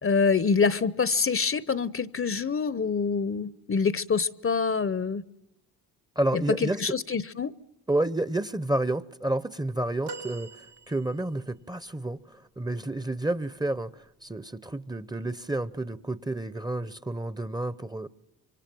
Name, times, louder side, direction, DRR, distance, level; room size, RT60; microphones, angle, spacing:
voice 1, 0.0-5.2 6.3-7.5, left 5 dB, 35° left, 19 dB, 0.9 m, -26 dB
voice 2, 6.2-6.8 7.9-18.1, right 1 dB, 10° right, 17 dB, 0.9 m, -30 dB
sound 1, 10.1-11.5 13.9-14.0 15.4-15.5, right 3 dB, 85° right, 1.0 m, -43 dB
26.5 x 24.0 x 7.7 m, 0.84 s
supercardioid pair, 60°, 39 cm